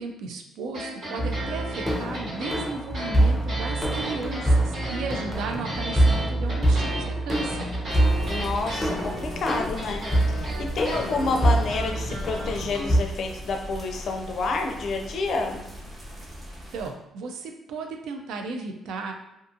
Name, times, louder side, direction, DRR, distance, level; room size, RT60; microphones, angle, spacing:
voice 1, 0.0-7.7 16.7-19.1, right 3 dB, 85° right, 4 dB, 0.4 m, -35 dB
sound 1, 0.7-12.8, right 1 dB, 55° right, 1.1 m, -35 dB
sound 2, 1.2-13.0, right 1 dB, 5° left, 0.5 m, -25 dB
sound 3, 7.9-16.9, equal, 30° right, 0.9 m, -39 dB
voice 2, 8.2-10.0 10.3-15.6, left 3 dB, 65° left, 3 dB, 0.4 m, -29 dB
2.5 x 2.4 x 2.6 m, 0.90 s
cardioid pair, 90°, 0 cm